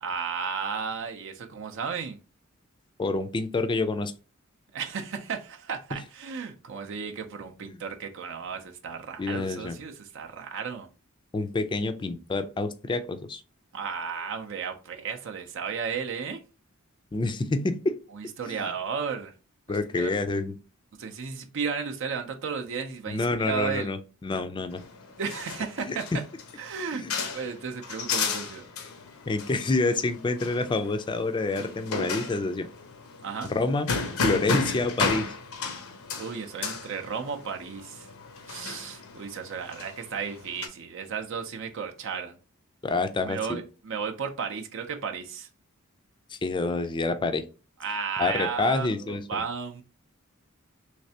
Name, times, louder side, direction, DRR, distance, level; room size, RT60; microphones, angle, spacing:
voice 1, 0.0-2.2 4.7-10.9 13.7-16.4 18.1-19.3 19.7-20.2 21.0-23.9 25.2-26.1 26.6-28.7 33.2-33.5 36.2-38.1 38.5-42.4 43.2-45.5 47.8-49.8, right 6 dB, 65° right, 0.5 m, -34 dB
voice 2, 3.0-4.1 5.9-6.0 9.2-9.8 11.3-13.4 17.1-18.0 18.4-18.7 19.7-20.5 23.1-24.8 25.8-26.2 26.9-27.1 29.3-32.7 33.5-33.9 34.2-35.3 42.8-43.6 46.3-47.4 48.2-49.4, left 3 dB, 25° left, 0.4 m, -28 dB
sound 1, 24.7-40.7, left 4 dB, 85° left, 0.7 m, -34 dB
3.2 x 3.2 x 2.7 m
head